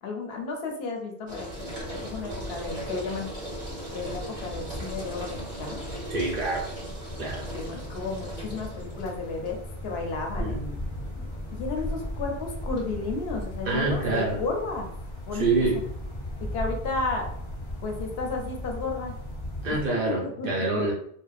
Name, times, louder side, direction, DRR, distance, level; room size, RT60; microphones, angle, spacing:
voice 1, 0.0-3.3 3.9-5.8 7.5-9.6 9.8-10.8 11.5-14.9 15.2-15.5 16.4-17.3 17.8-19.1 20.2-20.5, left 3 dB, 75° left, 2 dB, 0.8 m, -33 dB
sound 1, 1.3-18.7, right 1 dB, 35° right, 1.1 m, -41 dB
sound 2, 1.5-19.9, left 1 dB, 40° left, 0.4 m, -37 dB
voice 2, 6.1-6.7 7.2-7.5 10.4-10.6 13.7-14.4 15.3-15.8 19.6-20.9, right 3 dB, 60° right, -3 dB, 0.9 m, -26 dB
2.5 x 2.0 x 2.3 m, 0.70 s
omnidirectional pair, 1.1 m